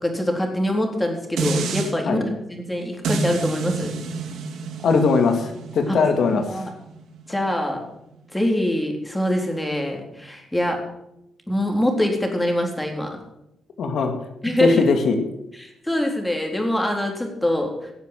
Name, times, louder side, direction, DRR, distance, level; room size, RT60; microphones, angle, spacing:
voice 1, 0.0-3.9 5.9-6.0 6.3-6.7 7.3-7.8 8.3-10.8 11.5-13.2 14.4-14.8 15.6-17.9, left 1 dB, 10° left, 2 dB, 3.8 m, -24 dB
sound 1, 1.4-1.9 3.0-8.2 8.6-8.7, right 4 dB, 85° right, 2.4 m, -29 dB
voice 2, 4.8-6.6 13.8-14.1 14.6-15.2, left 4 dB, 65° left, 5 dB, 2.2 m, -20 dB
17.5 x 7.3 x 7.6 m, 0.84 s
cardioid pair, 95°, 0 cm